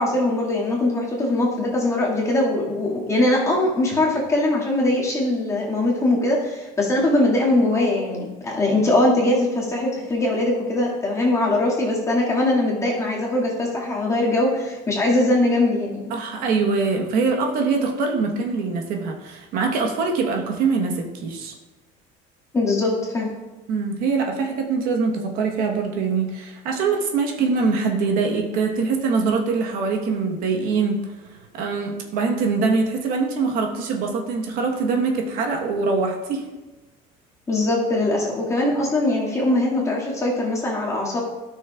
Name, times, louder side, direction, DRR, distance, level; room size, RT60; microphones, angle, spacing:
voice 1, 0.0-16.1 22.5-23.3 37.5-41.2, left 2 dB, 15° left, -4 dB, 1.9 m, -21 dB
voice 2, 16.1-21.5 23.7-36.4, right 4 dB, 60° right, 2 dB, 1.1 m, -23 dB
13.0 x 6.2 x 2.3 m, 1.1 s
cardioid pair, 145°, 17 cm